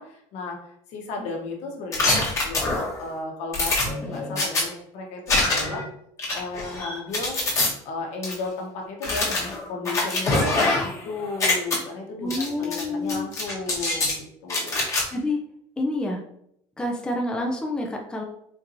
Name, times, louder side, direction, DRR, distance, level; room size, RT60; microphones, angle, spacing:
voice 1, 0.0-5.8 6.3-7.4 7.8-14.9, left 3 dB, 70° left, 0 dB, 1.1 m, -34 dB
sound 1, 1.9-3.0 3.5-4.6 5.3-5.8 6.2-7.7 8.2-8.3 9.0-11.0 11.3-11.8 12.3-12.8 13.1-14.2 14.5-15.0, left 2 dB, 25° left, 1.1 m, -24 dB
voice 2, 12.2-13.3 15.1-15.4 15.8-16.2 16.8-18.2, left 2 dB, 5° left, 1 dB, 0.4 m, -28 dB
4.4 x 2.8 x 2.6 m, 0.74 s
cardioid pair, 135°, 12 cm